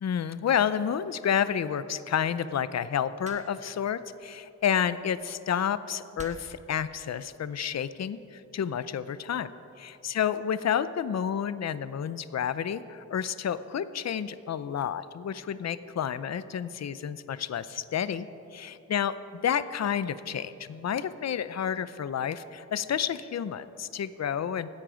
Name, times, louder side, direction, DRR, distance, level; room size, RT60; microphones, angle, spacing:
voice 1, 0.0-9.5 9.8-19.1 19.4-24.7, left 8 dB, 60° left, 14 dB, 0.5 m, -30 dB
sound 1, 3.2-3.8 5.0-5.2 6.2-6.7 7.6-7.9, right 2 dB, 25° right, 1.3 m, -46 dB
17.0 x 13.5 x 5.0 m, 2.8 s
wide cardioid pair, 145°, 30 cm